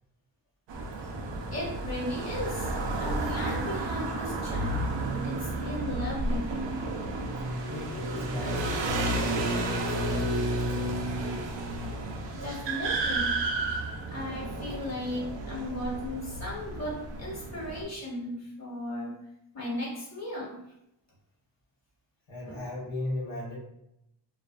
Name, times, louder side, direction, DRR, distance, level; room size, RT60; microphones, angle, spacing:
sound 1, 0.7-17.8, right 2 dB, 70° right, 0.5 m, -32 dB
voice 1, 1.5-2.7 3.0-6.6 12.3-13.4 14.1-19.1 19.5-20.6 22.4-22.6, left 1 dB, 35° left, -5 dB, 1.1 m, -36 dB
voice 2, 7.7-11.0 22.3-23.6, left 1 dB, 85° left, -6 dB, 1.0 m, -37 dB
2.5 x 2.4 x 2.2 m, 0.81 s
cardioid pair, 70°, 45 cm